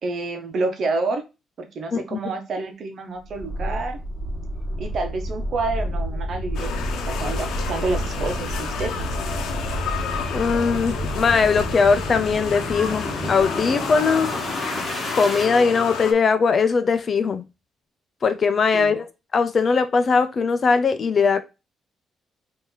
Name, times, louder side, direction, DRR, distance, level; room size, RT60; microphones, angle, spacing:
voice 1, 0.0-1.2 1.6-4.0 4.8-6.7 7.1-8.9 18.7-19.0, right 3 dB, 60° right, 1.1 m, -28 dB
sound 1, 3.3-15.5, equal, 10° left, 2.0 m, -30 dB
sound 2, 6.5-16.1, left 6 dB, 80° left, 0.9 m, -31 dB
voice 2, 10.3-14.3 15.1-17.4 18.2-19.1 19.3-21.4, left 5 dB, 45° left, 0.6 m, -20 dB
4.3 x 2.9 x 3.9 m
cardioid pair, 90°, 0 cm